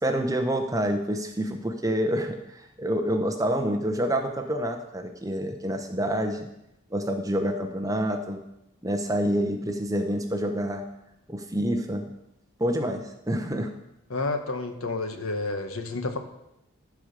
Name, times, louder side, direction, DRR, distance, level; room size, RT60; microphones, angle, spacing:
voice 1, 0.0-6.5 6.9-8.4 8.8-10.8 11.3-12.0 12.6-13.0 13.3-13.7, equal, 15° right, 4 dB, 0.9 m, -27 dB
voice 2, 14.1-16.2, left 3 dB, 75° left, 6 dB, 1.1 m, -30 dB
13.5 x 4.9 x 6.7 m, 0.86 s
head